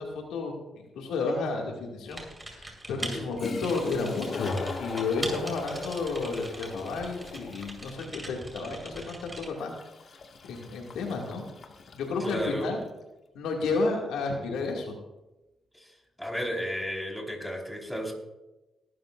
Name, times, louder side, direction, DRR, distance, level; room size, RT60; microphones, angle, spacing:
voice 1, 0.0-2.2 2.5-9.7 10.5-11.4 11.9-12.8 13.3-15.0, left 3 dB, 85° left, 0 dB, 2.2 m, -31 dB
Toilet flush, 1.3-1.4 3.1-3.2 3.4-12.8, left 4 dB, 60° left, 1.7 m, -41 dB
Typing, 2.1-9.5, right 1 dB, 20° right, 4.4 m, -41 dB
voice 2, 12.2-12.7 15.7-18.1, equal, 5° left, 0 dB, 4.5 m, -34 dB
19.0 x 13.0 x 2.5 m, 1.0 s
supercardioid pair, 60°, 0 cm